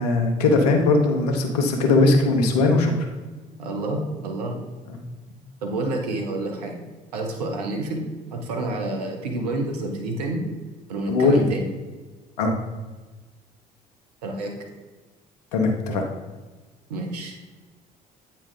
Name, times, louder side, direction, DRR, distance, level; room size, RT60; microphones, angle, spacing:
voice 1, 0.0-2.9 4.9-5.0 11.1-11.4 12.4-12.6 15.5-16.0, left 3 dB, 85° left, 3 dB, 1.0 m, -19 dB
voice 2, 3.6-4.6 5.6-6.8 7.1-10.4 10.9-11.6 14.2-14.5 16.9-17.3, right 2 dB, 85° right, 3 dB, 1.0 m, -29 dB
8.5 x 4.4 x 3.8 m, 1.3 s
hypercardioid pair, 55°, 20 cm